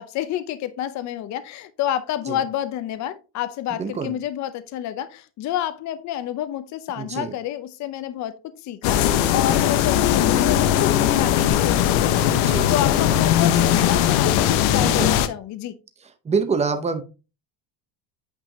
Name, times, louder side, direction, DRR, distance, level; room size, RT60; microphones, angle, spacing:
voice 1, 0.0-15.8, left 11 dB, 40° left, 0.6 m, -29 dB
voice 2, 3.7-4.1 7.0-7.3 12.3-12.7 14.2-15.2 16.2-17.0, right 5 dB, 15° right, 0.7 m, -27 dB
sound 1, 8.8-15.3, left 11 dB, 85° left, 0.9 m, -19 dB
8.8 x 5.0 x 2.7 m
cardioid pair, 160°, 44 cm